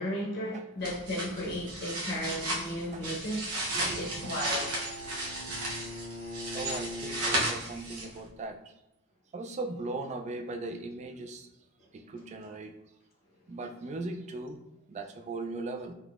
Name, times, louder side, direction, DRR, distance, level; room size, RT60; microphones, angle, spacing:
voice 1, 0.0-3.4 3.9-4.7 5.8-5.9, equal, 45° left, -2 dB, 0.7 m, -34 dB
sound 1, 0.8-8.3, right 1 dB, 80° right, 0.8 m, -34 dB
voice 2, 3.7-4.4 5.5-5.6 6.5-8.6 9.3-11.5 11.9-12.7 13.5-14.6 14.9-15.9, right 2 dB, 30° right, 4 dB, 0.3 m, -38 dB
Bowed string instrument, 3.9-8.0, left 1 dB, 10° left, 1.3 m, -42 dB
3.6 x 2.8 x 2.4 m, 0.87 s
head